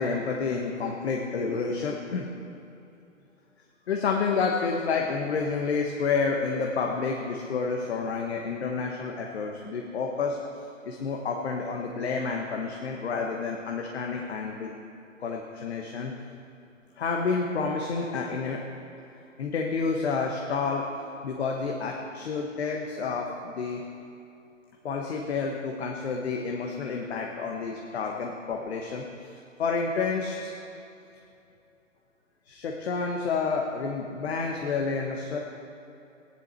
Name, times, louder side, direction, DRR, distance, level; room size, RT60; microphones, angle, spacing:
voice 1, 0.0-2.3 3.9-10.4 10.8-14.7 15.2-16.1 17.0-18.6 19.4-20.8 21.2-23.8 24.8-29.3 29.6-30.6 32.5-35.4, left 4 dB, 55° left, 1 dB, 1.3 m, -29 dB
16.0 x 10.5 x 4.4 m, 2.7 s
figure-of-eight pair, 130°, 39 cm